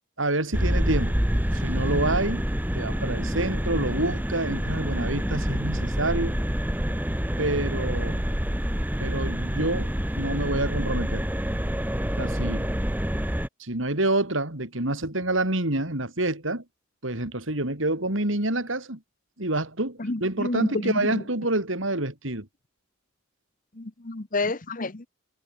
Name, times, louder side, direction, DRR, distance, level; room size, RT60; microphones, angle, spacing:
voice 1, 0.2-1.2 1.5-2.5 2.7-6.4 7.4-8.2 9.0-11.3 12.2-12.7 13.6-16.6 17.0-19.0 19.4-22.5, right 2 dB, 65° right, 4.4 m, -27 dB
sound 1, 0.5-13.5, equal, 10° right, 1.5 m, -27 dB
voice 2, 20.0-21.2 23.8-25.1, left 2 dB, 40° left, 1.2 m, -29 dB
head